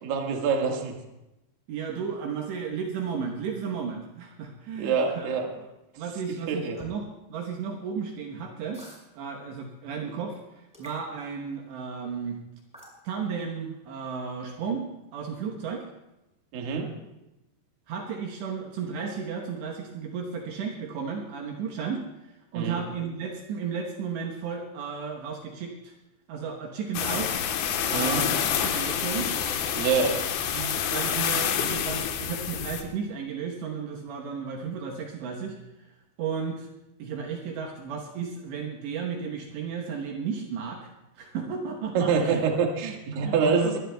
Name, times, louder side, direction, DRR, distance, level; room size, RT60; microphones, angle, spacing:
voice 1, 0.0-1.0 4.8-5.5 6.5-6.8 16.5-16.9 22.5-22.8 27.9-28.2 29.7-30.2 41.9-43.8, right 5 dB, 60° right, 1 dB, 3.1 m, -26 dB
voice 2, 1.7-5.3 6.0-8.8 9.1-12.4 13.0-14.9 15.1-15.9 17.9-25.9 26.3-27.4 27.9-29.3 30.5-35.9 36.2-36.7 37.0-40.9 41.2-42.4 42.8-43.8, right 6 dB, 75° right, 0 dB, 3.2 m, -34 dB
sound 1, 6.7-7.0 8.7-9.0 10.7-11.0 12.7-13.0, equal, ahead, 4.9 m, -47 dB
sound 2, 26.9-32.8, left 8 dB, 75° left, 3.2 m, -28 dB
22.0 x 20.0 x 2.3 m, 0.96 s
omnidirectional pair, 5.3 m